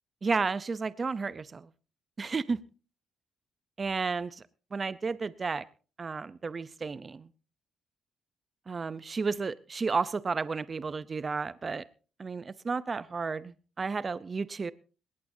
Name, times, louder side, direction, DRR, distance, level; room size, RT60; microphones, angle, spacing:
voice 1, 0.2-1.7 2.2-2.6 3.8-4.4 4.7-5.6 6.0-7.3 8.7-11.8 12.2-14.7, right 4 dB, 35° right, 17 dB, 0.6 m, -32 dB
20.0 x 18.0 x 2.7 m, 0.37 s
cardioid pair, 90°, 0 cm